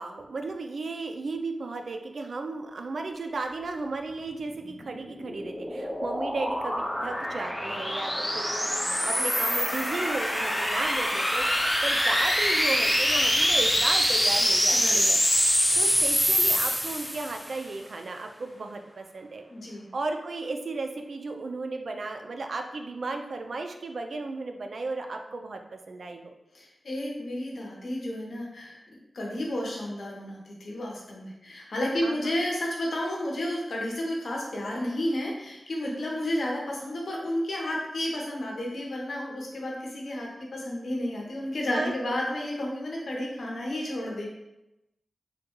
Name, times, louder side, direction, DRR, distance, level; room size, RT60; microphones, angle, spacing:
voice 1, 0.0-11.4 11.8-15.2 15.8-26.3 32.0-32.3 35.8-36.2 41.7-41.9, right 3 dB, 70° right, 5 dB, 0.3 m, -35 dB
sound 1, 4.8-17.5, equal, 5° left, 0.6 m, -25 dB
voice 2, 14.7-15.0 19.5-19.8 26.5-28.8 29.1-44.3, left 1 dB, 75° left, -2 dB, 0.8 m, -32 dB
3.6 x 2.2 x 3.0 m, 0.94 s
wide cardioid pair, 70°, 0 cm